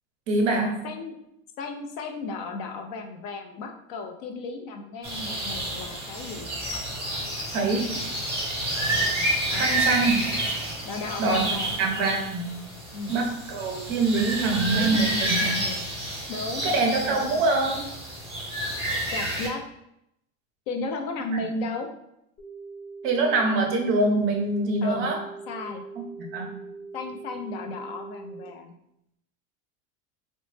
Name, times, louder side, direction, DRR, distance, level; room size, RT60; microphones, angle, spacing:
voice 1, 0.3-0.8 7.5-8.0 9.6-10.2 11.2-12.6 13.1-15.6 16.6-17.8 23.0-25.2 26.0-26.6, right 3 dB, 35° right, 2 dB, 0.5 m, -24 dB
voice 2, 0.8-1.2 1.6-6.5 9.4-9.7 10.8-11.7 12.9-13.1 14.5-15.8 16.3-17.5 19.1-19.6 20.7-21.9 24.8-25.1 25.5-25.8 26.9-28.8, left 3 dB, 50° left, 5 dB, 0.4 m, -35 dB
sound 1, 5.0-19.5, right 1 dB, 5° right, 0.9 m, -29 dB
sound 2, 22.4-28.5, right 4 dB, 25° left, 0.9 m, -42 dB
3.9 x 2.1 x 3.1 m, 0.79 s
cardioid pair, 175°, 35 cm